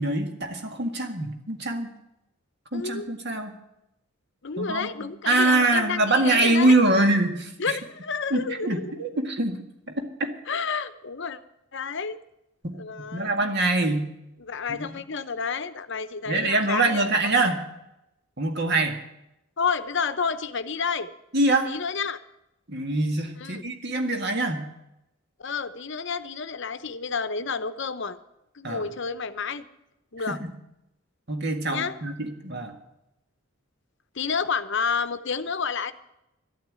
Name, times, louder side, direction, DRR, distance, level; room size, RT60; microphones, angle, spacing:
voice 1, 0.0-1.9 2.7-3.5 4.6-7.8 8.3-9.6 12.6-14.1 14.7-14.9 16.3-17.6 18.4-19.0 21.3-21.7 22.7-24.7 28.6-28.9 30.3-30.5 31.3-32.8, right 2 dB, 50° right, 4 dB, 1.9 m, -24 dB
voice 2, 2.7-3.1 4.4-6.8 7.6-9.1 10.5-11.4 11.7-12.2 12.7-13.3 14.4-17.3 19.6-21.1 21.6-22.2 23.4-23.6 25.4-28.2 28.5-29.7 30.1-30.4 31.7-32.0 34.1-35.9, left 5 dB, 55° left, 12 dB, 0.8 m, -30 dB
13.0 x 8.9 x 8.8 m, 0.86 s
head